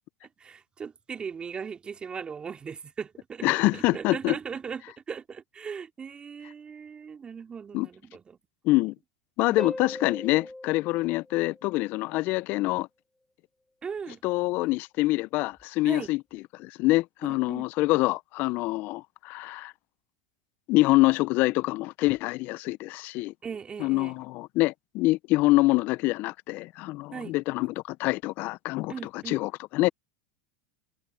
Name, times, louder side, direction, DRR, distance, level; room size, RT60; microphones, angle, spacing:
voice 1, 0.4-8.4 9.5-9.6 13.8-14.2 15.8-16.1 17.2-17.7 23.4-24.2 27.1-27.4 28.9-29.5, right 6 dB, 25° right, 2.9 m, -38 dB
voice 2, 3.4-4.3 7.7-7.9 8.6-8.9 9.4-12.9 14.2-19.7 20.7-23.3 23.8-29.9, left 20 dB, 55° left, 0.4 m, -25 dB
Harp, 9.6-12.1 15.6-15.7, left 2 dB, 5° left, 1.9 m, -40 dB
hypercardioid pair, 100°, 4 cm